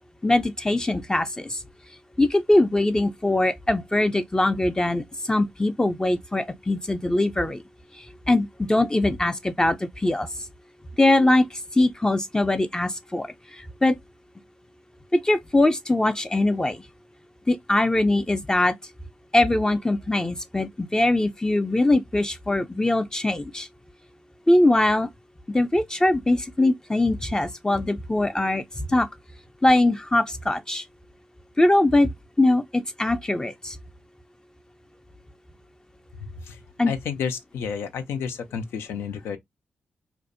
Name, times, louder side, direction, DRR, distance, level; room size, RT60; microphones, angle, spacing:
voice 1, 0.2-1.6 2.2-7.6 8.0-10.3 11.0-14.0 15.1-16.8 17.5-18.7 19.3-23.7 24.5-25.1 25.5-28.6 28.9-29.1 29.6-30.8 31.6-32.1 32.4-33.8 36.8-36.9, left 2 dB, 20° left, 0.4 m, -22 dB
voice 2, 36.9-39.4, left 7 dB, 85° left, 0.5 m, -30 dB
2.5 x 2.0 x 2.5 m
supercardioid pair, 50°, 4 cm